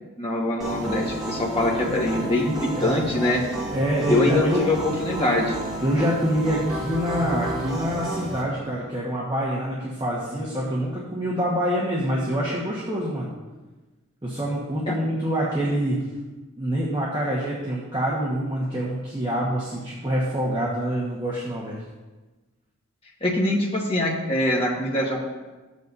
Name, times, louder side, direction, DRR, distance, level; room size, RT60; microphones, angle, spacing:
voice 1, 0.2-3.4 4.1-5.5 14.9-15.0 23.2-25.3, left 1 dB, 25° left, -3 dB, 1.6 m, -23 dB
sound 1, 0.6-8.4, right 1 dB, ahead, 2.4 m, -31 dB
voice 2, 3.7-4.6 5.8-13.3 14.2-16.0 16.6-21.8, equal, 20° right, -6 dB, 1.3 m, -26 dB
13.5 x 8.3 x 2.7 m, 1.2 s
head